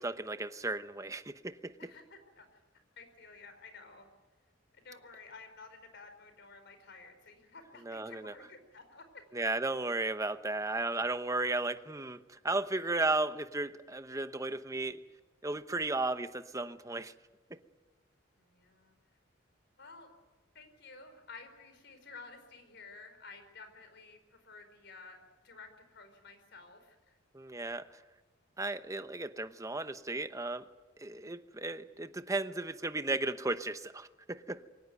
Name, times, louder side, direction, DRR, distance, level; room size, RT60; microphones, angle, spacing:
voice 1, 0.0-1.7 7.8-8.3 9.3-15.0 15.4-17.1 17.5-17.6 27.3-28.0 28.6-30.7 31.0-34.7, right 2 dB, 15° right, 11 dB, 0.9 m, -35 dB
voice 2, 1.8-2.6 3.0-4.1 4.7-9.2 18.4-18.9 19.8-20.1 20.5-25.2 25.4-27.2, left 4 dB, 60° left, 8 dB, 4.6 m, -53 dB
23.5 x 18.5 x 9.4 m, 1.2 s
head